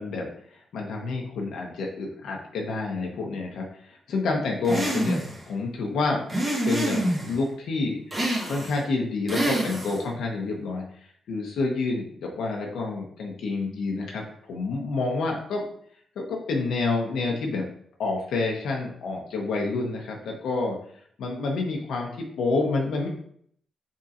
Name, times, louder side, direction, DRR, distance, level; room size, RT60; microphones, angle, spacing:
voice 1, 0.0-5.2 5.5-6.2 6.6-15.6 16.2-17.7 18.0-20.8 21.2-23.1, left 3 dB, 80° left, 0 dB, 0.8 m, -28 dB
sound 1, 4.6-5.4 6.3-7.3 8.1-8.8 9.3-10.1, right 1 dB, 30° right, 1.4 m, -27 dB
4.2 x 3.6 x 2.5 m, 0.62 s
cardioid pair, 70°, 0 cm